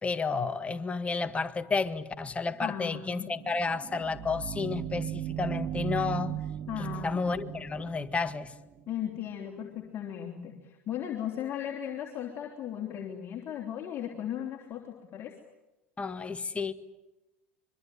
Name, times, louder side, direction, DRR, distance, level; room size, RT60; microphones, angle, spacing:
voice 1, 0.0-6.4 7.0-8.5 16.0-16.7, left 4 dB, 20° left, 1.8 m, -31 dB
voice 2, 2.6-3.3 6.7-7.2 8.9-15.3, left 10 dB, 40° left, 3.4 m, -37 dB
sound 1, 3.3-8.9, right 11 dB, 40° right, 1.1 m, -37 dB
25.0 x 23.5 x 9.4 m
hypercardioid pair, 80°, 7 cm